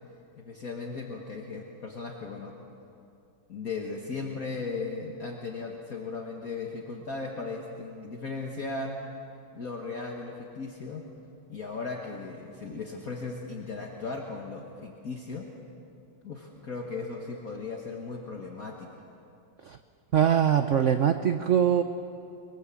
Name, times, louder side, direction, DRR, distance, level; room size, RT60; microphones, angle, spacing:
voice 1, 0.4-2.5 3.5-9.0 9.5-11.0 11.5-15.5 16.2-19.0, left 4 dB, 50° left, 0 dB, 1.9 m, -37 dB
voice 2, 20.1-21.8, right 9 dB, 60° right, 8 dB, 0.8 m, -22 dB
23.0 x 22.5 x 7.6 m, 2.5 s
omnidirectional pair, 2.1 m